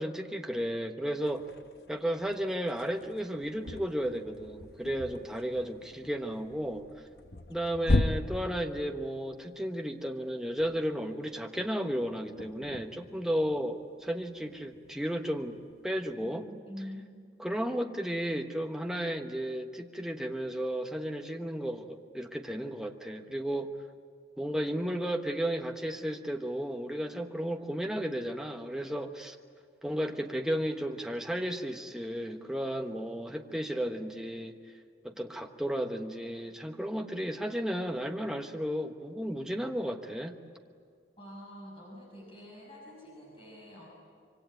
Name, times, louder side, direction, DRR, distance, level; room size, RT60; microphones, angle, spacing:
voice 1, 0.0-1.4 1.9-6.8 7.5-15.6 15.8-16.5 17.4-23.7 24.4-29.4 29.8-34.6 35.0-40.3, equal, 5° right, 3 dB, 1.2 m, -33 dB
sound 1, 1.2-16.1, left 2 dB, 65° left, 1.0 m, -38 dB
voice 2, 16.1-17.2 41.2-43.9, equal, 30° left, -3 dB, 6.3 m, -46 dB
25.5 x 24.0 x 9.1 m, 2.1 s
head